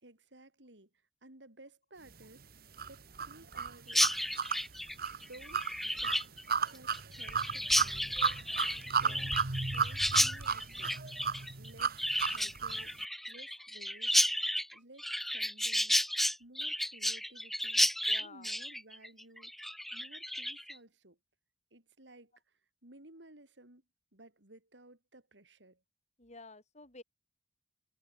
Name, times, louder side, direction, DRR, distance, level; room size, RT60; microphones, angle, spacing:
voice 1, 0.0-0.9 1.2-4.2 5.3-6.2 6.7-8.2 8.9-9.4 9.6-14.2 14.7-16.0 16.4-17.9 18.2-19.5 19.9-21.2 21.7-23.8 24.1-25.8, right 2 dB, 85° right, 4.3 m, -57 dB
sound 1, 2.8-12.8, right 5 dB, 60° right, 1.6 m, -34 dB
Chirp tweet, 3.9-20.8, equal, ahead, 0.9 m, -32 dB
voice 2, 8.9-9.3 18.1-18.5 26.2-27.0, left 3 dB, 40° left, 7.8 m, -52 dB
open air
head